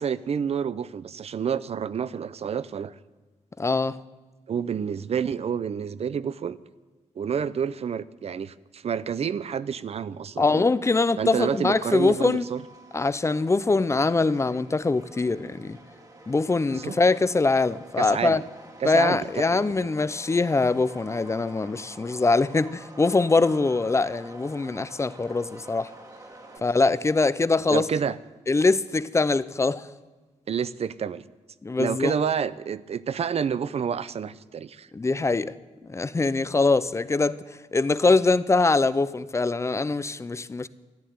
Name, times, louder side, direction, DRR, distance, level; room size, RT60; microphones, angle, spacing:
voice 1, 0.0-2.9 4.5-6.6 7.2-10.7 11.2-12.6 16.7-17.0 18.0-18.4 18.8-19.9 27.7-28.2 30.5-31.2 31.8-34.9, right 7 dB, 55° right, 0.6 m, -29 dB
voice 2, 3.6-4.0 10.4-12.4 12.9-15.8 16.3-18.4 18.8-25.9 26.6-27.9 28.5-29.9 31.6-32.1 34.9-35.5 35.8-37.4 37.7-40.7, left 3 dB, 20° left, 0.5 m, -23 dB
Subway metro underground, 10.4-26.6, right 2 dB, 30° right, 1.8 m, -48 dB
13.5 x 11.0 x 9.3 m
wide cardioid pair, 110°, 13 cm